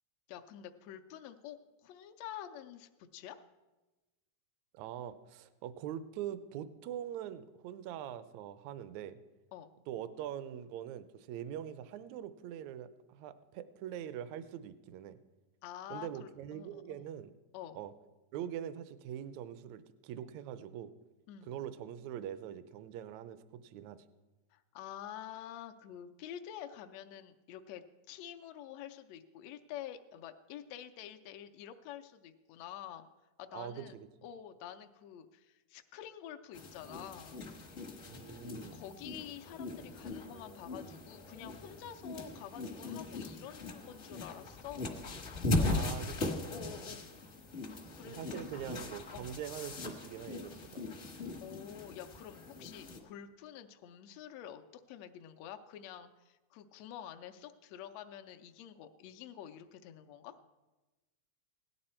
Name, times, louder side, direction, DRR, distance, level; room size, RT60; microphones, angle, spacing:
voice 1, 0.3-3.4 9.5-9.7 15.6-17.1 17.5-17.8 21.3-21.5 24.5-33.1 33.4-34.0 34.2-37.4 38.7-44.9 45.5-45.9 46.5-47.1 47.9-48.7 49.1-49.3 51.4-60.4, left 10 dB, 75° left, 7 dB, 1.6 m, -48 dB
voice 2, 4.7-9.2 9.9-15.2 15.9-17.3 17.8-17.9 18.3-20.9 21.5-24.0 33.5-34.1 38.1-38.8 45.6-46.2 46.6-46.9 48.0-50.8, right 10 dB, 75° right, 13 dB, 1.8 m, -43 dB
sound 1, 36.5-53.0, left 2 dB, 45° left, 0.8 m, -39 dB
17.0 x 11.5 x 4.4 m, 1.1 s
omnidirectional pair, 3.6 m